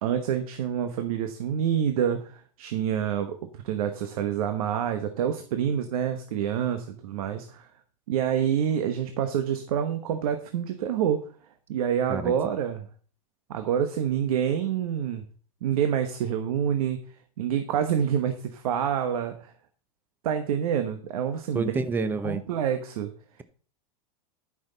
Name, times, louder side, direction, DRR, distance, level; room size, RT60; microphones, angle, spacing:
voice 1, 0.0-3.4 3.6-7.7 8.1-11.2 11.7-12.8 13.5-15.2 15.6-17.0 17.4-19.5 20.2-21.8 22.2-23.1, right 9 dB, 75° right, 7 dB, 1.2 m, -27 dB
voice 2, 21.5-22.4, right 3 dB, 10° right, 11 dB, 0.7 m, -28 dB
13.0 x 6.2 x 4.0 m, 0.42 s
supercardioid pair, 140°, 19 cm